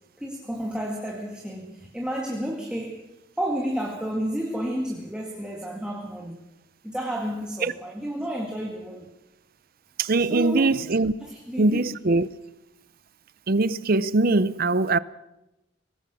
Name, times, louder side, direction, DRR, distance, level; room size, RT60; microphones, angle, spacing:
voice 1, 0.2-3.1 3.4-6.4 6.8-9.1 10.2-10.8 11.2-11.8, equal, 5° right, 2.3 m, -31 dB
voice 2, 10.0-11.1 11.6-12.3 13.5-15.0, right 3 dB, 50° right, 0.7 m, -22 dB
23.5 x 19.5 x 6.3 m
head